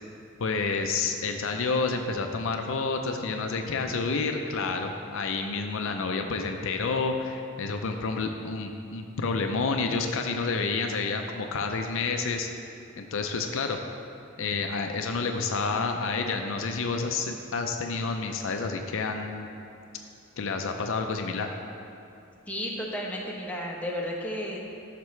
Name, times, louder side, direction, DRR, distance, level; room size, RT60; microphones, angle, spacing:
voice 1, 0.4-12.5 13.0-13.8 14.4-19.5 20.4-21.5, left 4 dB, 65° left, 4 dB, 0.5 m, -29 dB
voice 2, 22.5-24.6, equal, 5° left, -3 dB, 0.9 m, -33 dB
12.0 x 5.9 x 3.2 m, 2.6 s
head